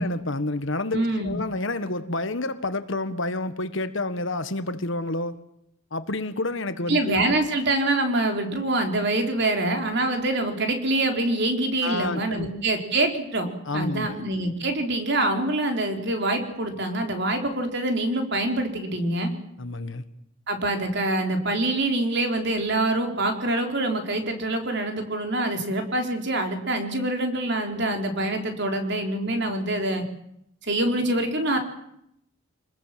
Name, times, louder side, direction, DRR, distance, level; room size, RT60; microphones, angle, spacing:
voice 1, 0.0-5.3 5.9-7.2 11.8-12.5 13.6-14.2 19.6-20.0, left 2 dB, 60° left, 1.5 m, -29 dB
voice 2, 0.9-1.4 6.9-19.3 20.5-30.0 30.6-31.6, right 2 dB, 50° right, 3.9 m, -25 dB
26.0 x 20.5 x 7.6 m
head